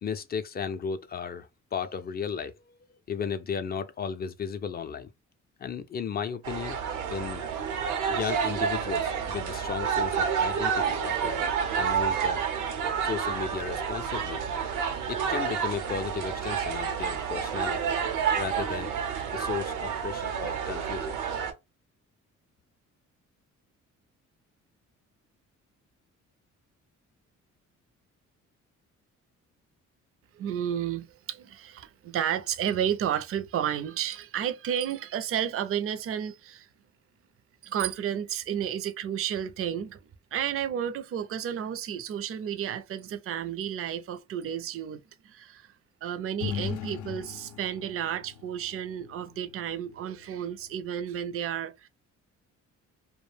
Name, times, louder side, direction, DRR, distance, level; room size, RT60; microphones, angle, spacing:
voice 1, 0.0-2.8 3.1-5.1 5.6-6.8 7.1-7.4 8.1-11.5 11.8-12.4 13.0-14.4 15.0-17.9 18.3-18.9 19.3-21.2, left 6 dB, 35° left, 0.4 m, -34 dB
sound 1, 6.4-21.5, right 7 dB, 85° right, 0.7 m, -29 dB
voice 2, 30.3-36.7 37.6-45.7 46.0-51.9, right 9 dB, 50° right, 0.4 m, -32 dB
sound 2, 46.4-51.3, left 8 dB, 85° left, 0.5 m, -39 dB
2.3 x 2.1 x 3.2 m
cardioid pair, 90°, 30 cm